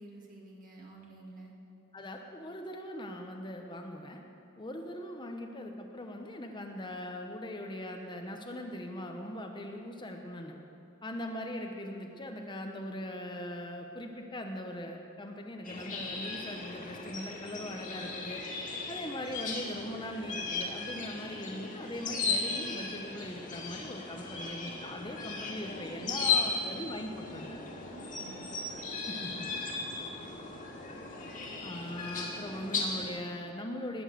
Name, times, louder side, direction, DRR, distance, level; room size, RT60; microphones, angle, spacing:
voice 1, 0.0-1.5 25.9-26.5 27.9-28.5 28.9-29.4, right 2 dB, 40° right, -2 dB, 2.0 m, -50 dB
voice 2, 1.9-4.2 4.6-10.5 11.0-27.6 29.1-29.5 31.6-34.0, left 1 dB, 20° left, 3 dB, 0.9 m, -40 dB
sound 1, 15.6-33.1, left 4 dB, 35° left, 2.1 m, -36 dB
19.5 x 7.2 x 7.8 m, 2.7 s
head